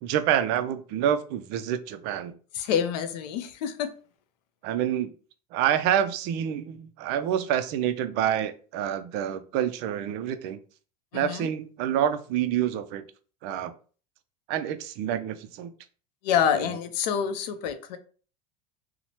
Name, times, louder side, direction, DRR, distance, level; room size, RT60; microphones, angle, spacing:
voice 1, 0.0-2.3 4.6-5.1 5.5-10.6 11.1-13.0 13.4-13.7 14.5-15.7, right 10 dB, 55° right, 0.4 m, -27 dB
voice 2, 2.5-3.9 11.1-11.5 16.2-18.0, left 8 dB, 80° left, 0.5 m, -27 dB
2.9 x 2.1 x 2.8 m
supercardioid pair, 120°, 21 cm